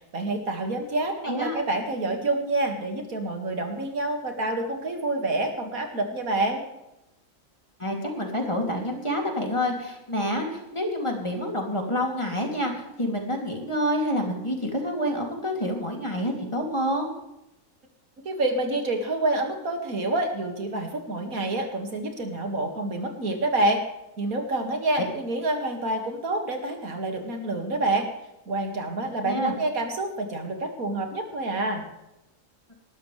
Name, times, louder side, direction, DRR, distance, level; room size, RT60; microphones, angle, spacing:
voice 1, 0.1-6.6 18.2-23.8 24.2-28.1 28.5-31.8, right 2 dB, 85° right, 3 dB, 2.6 m, -27 dB
voice 2, 1.2-1.6 7.8-17.1 24.9-25.0 29.2-29.5, equal, 20° left, 0 dB, 3.0 m, -28 dB
20.5 x 12.5 x 3.4 m, 0.90 s
omnidirectional pair, 1.4 m